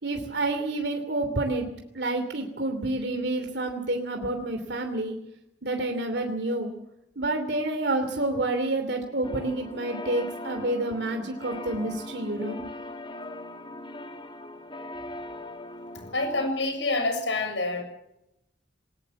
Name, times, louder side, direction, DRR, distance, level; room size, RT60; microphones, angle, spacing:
voice 1, 0.0-1.6 1.9-5.2 5.6-6.7 7.2-12.6, right 2 dB, 70° right, 4 dB, 3.0 m, -29 dB
sound 1, 9.2-16.5, left 2 dB, 30° left, 2.6 m, -40 dB
voice 2, 16.1-17.8, left 2 dB, 85° left, 6 dB, 7.0 m, -27 dB
20.5 x 20.0 x 7.1 m, 0.83 s
head